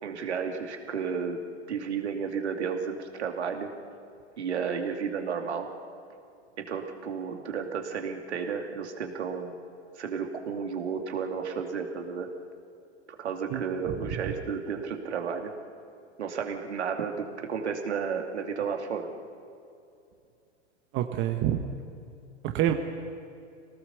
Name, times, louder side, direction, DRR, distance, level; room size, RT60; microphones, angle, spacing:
voice 1, 0.0-3.7 4.4-5.7 6.6-9.6 10.0-12.3 13.1-15.5 16.2-19.1, right 6 dB, 65° right, 4 dB, 2.6 m, -32 dB
voice 2, 13.5-14.3 20.9-21.6 22.4-22.7, right 12 dB, 35° right, 5 dB, 1.3 m, -28 dB
25.5 x 18.5 x 7.0 m, 2.5 s
figure-of-eight pair, 100°, 35 cm